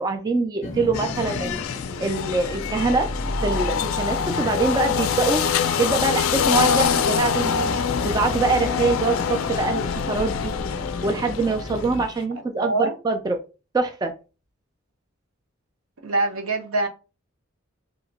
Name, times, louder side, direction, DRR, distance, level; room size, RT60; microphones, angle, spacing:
voice 1, 0.0-3.1 3.4-5.4 5.8-7.7 8.0-10.5 11.0-13.4 13.7-14.1, right 3 dB, 20° right, 0.3 m, -24 dB
sound 1, 0.6-12.0, left 1 dB, 35° left, 0.7 m, -34 dB
sound 2, 0.9-12.1, left 7 dB, 70° left, 0.3 m, -25 dB
voice 2, 12.6-12.9 16.0-16.9, right 2 dB, 85° right, 0.8 m, -24 dB
2.8 x 2.2 x 3.9 m
head